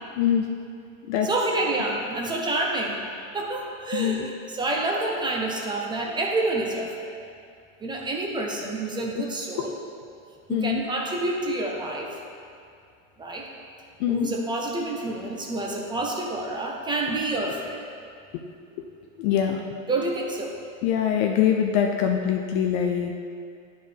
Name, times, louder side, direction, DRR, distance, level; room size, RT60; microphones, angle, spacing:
voice 1, 0.2-0.5 1.1-1.3 3.9-4.3 10.5-10.8 14.0-14.3 19.2-19.6 20.8-23.2, left 9 dB, 35° left, 3 dB, 0.4 m, -23 dB
voice 2, 1.2-3.0 3.3-7.1 7.8-9.8 10.5-12.2 13.2-13.5 14.1-17.8 19.9-20.5, right 2 dB, 10° right, -1 dB, 0.6 m, -28 dB
10.5 x 4.4 x 3.3 m, 2.4 s
hypercardioid pair, 125°, 40 cm